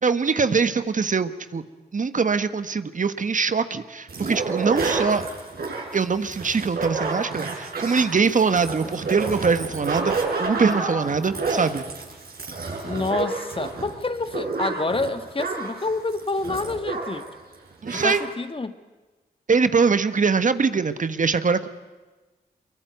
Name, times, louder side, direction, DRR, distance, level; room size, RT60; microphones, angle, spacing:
voice 1, 0.0-1.6 1.9-5.2 5.9-11.9 17.8-18.2 19.5-21.7, right 5 dB, 50° right, 1.3 m, -23 dB
sound 1, 4.1-17.3 17.5-17.6 17.8-18.2, right 4 dB, 65° right, 6.1 m, -29 dB
voice 2, 12.8-17.3 17.9-18.8, left 3 dB, 35° left, 1.7 m, -28 dB
24.0 x 22.5 x 9.4 m
cardioid pair, 55°, 16 cm